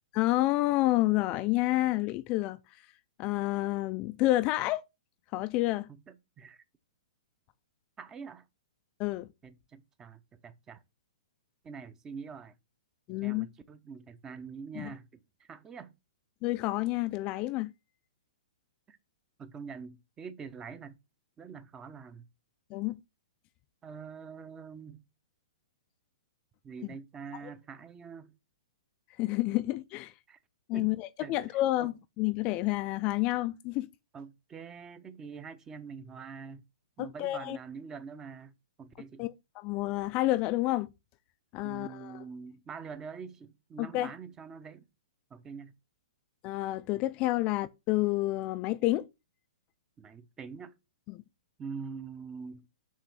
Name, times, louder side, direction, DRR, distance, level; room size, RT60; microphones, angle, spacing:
voice 1, 0.1-2.6 3.2-4.8 5.3-5.9 9.0-9.3 13.1-13.5 14.8-14.9 16.4-17.7 22.7-23.0 29.2-30.1 30.7-33.9 37.0-37.6 39.2-40.9 41.5-42.2 43.8-44.1 46.4-49.1 51.1-51.2, left 17 dB, 30° left, 0.3 m, -29 dB
voice 2, 5.9-6.6 8.0-8.5 9.4-10.8 11.6-12.5 13.1-15.9 18.9-19.0 19.4-21.0 21.4-22.3 23.8-25.0 26.6-28.3 30.3-30.4 30.7-30.9 31.2-31.9 34.1-36.6 37.0-39.2 41.6-44.9 45.3-45.8 50.0-50.7 51.6-52.7, right 5 dB, 15° right, 0.6 m, -45 dB
7.3 x 3.1 x 5.9 m
hypercardioid pair, 145°, 4 cm